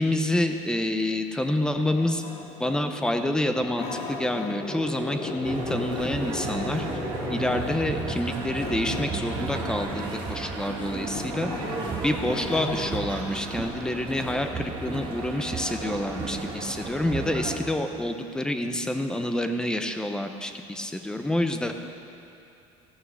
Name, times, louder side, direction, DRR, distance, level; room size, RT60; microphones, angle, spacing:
voice 1, 0.0-2.2 2.6-6.9 7.3-11.5 12.0-21.7, left 1 dB, 5° left, 6 dB, 0.6 m, -28 dB
sound 1, 1.9-4.8 5.1-7.8 8.6-10.2 10.6-13.1, left 3 dB, 55° left, 1.3 m, -38 dB
sound 2, 3.3-7.9, left 1 dB, 25° left, 2.8 m, -38 dB
sound 3, 5.4-17.6, right 4 dB, 40° right, 1.9 m, -33 dB
15.5 x 6.3 x 6.2 m, 2.7 s
cardioid pair, 155°, 13 cm